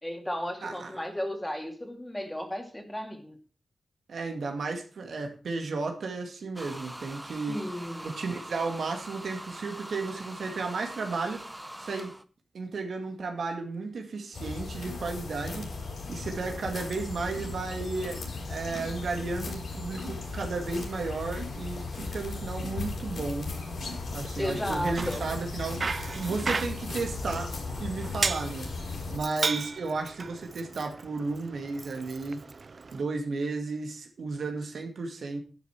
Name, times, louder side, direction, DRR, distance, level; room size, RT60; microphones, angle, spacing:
voice 1, 0.0-3.4 7.5-8.1 24.4-25.3, equal, 10° left, 4 dB, 2.6 m, -34 dB
voice 2, 0.6-0.9 4.1-7.6 8.0-11.5 11.8-12.1 12.5-15.7 16.1-18.2 18.5-23.5 24.1-25.8 26.1-27.5 27.8-28.7 29.1-32.4 32.9-35.4, right 3 dB, 75° right, 4 dB, 2.3 m, -33 dB
sound 1, 6.6-12.2, right 1 dB, 10° right, 0.8 m, -43 dB
sound 2, 14.3-29.2, left 3 dB, 70° left, 5.2 m, -36 dB
Bicycle, 24.7-33.0, right 4 dB, 45° right, 0.5 m, -36 dB
11.5 x 10.0 x 4.6 m, 0.36 s
wide cardioid pair, 110°, 0 cm